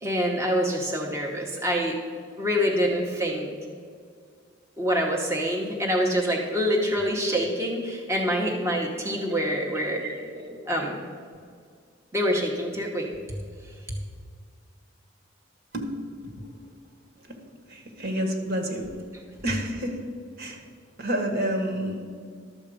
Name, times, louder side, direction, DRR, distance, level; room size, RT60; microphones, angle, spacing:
voice 1, 0.0-2.0 2.4-3.5 4.8-10.0 10.7-11.0 12.1-13.1, equal, 15° right, -1 dB, 1.0 m, -26 dB
voice 2, 10.0-10.6 15.7-15.9 16.2-16.4 17.7-18.8 19.4-20.0 20.4-20.6 21.0-22.0, right 1 dB, 55° right, 3 dB, 1.5 m, -29 dB
12.0 x 7.3 x 5.1 m, 2.1 s
head